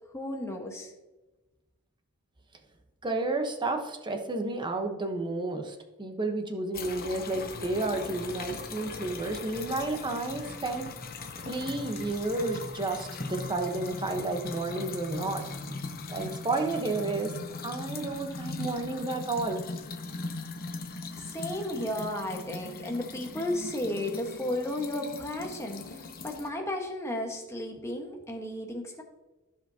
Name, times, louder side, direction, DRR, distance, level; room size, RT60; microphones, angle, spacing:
voice 1, 0.1-0.9 21.2-29.0, left 1 dB, 15° left, 1 dB, 1.3 m, -34 dB
voice 2, 3.0-10.9 11.4-15.4 16.1-17.3 17.6-19.6, right 2 dB, 20° right, 4 dB, 1.0 m, -31 dB
sound 1, 6.7-26.5, left 3 dB, 45° left, 0.8 m, -40 dB
15.5 x 5.1 x 2.8 m, 1.1 s
head